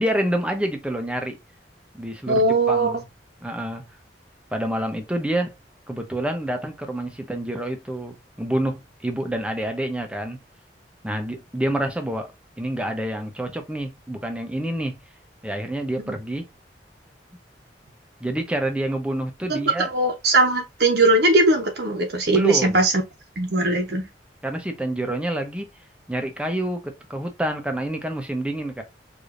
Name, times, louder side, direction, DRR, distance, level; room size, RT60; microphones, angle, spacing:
voice 1, 0.0-1.4 1.9-3.0 3.4-3.8 4.5-5.6 5.9-10.4 11.0-12.3 12.6-15.0 15.4-16.5 18.2-19.9 22.3-22.8 24.4-25.7 26.1-28.8, right 1 dB, 5° right, 0.7 m, -27 dB
voice 2, 2.3-2.9 16.1-16.2 19.5-23.0 23.4-24.1, right 2 dB, 65° right, 1.0 m, -20 dB
4.8 x 2.7 x 2.5 m
head